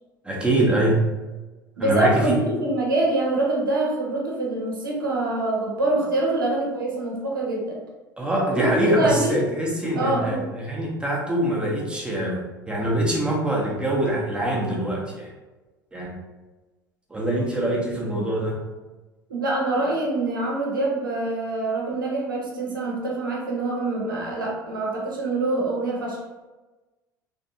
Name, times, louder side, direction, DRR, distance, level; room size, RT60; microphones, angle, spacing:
voice 1, 0.2-1.0 1.8-2.4 8.2-15.3 15.9-16.1 17.1-18.6, right 1 dB, 10° right, -3 dB, 0.8 m, -24 dB
voice 2, 1.8-7.8 8.5-9.4 9.9-10.4 19.3-26.2, right 2 dB, 80° right, -2 dB, 0.7 m, -25 dB
3.4 x 2.0 x 2.6 m, 1.2 s
figure-of-eight pair, 70°, 11 cm